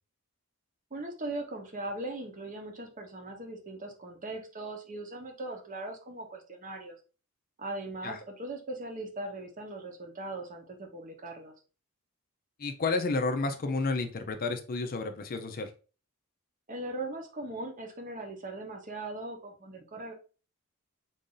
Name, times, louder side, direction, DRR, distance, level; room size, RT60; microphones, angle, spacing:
voice 1, 0.9-7.0 7.6-11.5 16.7-20.1, right 2 dB, 35° right, 4 dB, 0.8 m, -39 dB
voice 2, 12.6-15.7, left 3 dB, 40° left, 7 dB, 0.5 m, -31 dB
4.0 x 2.6 x 3.7 m, 0.35 s
head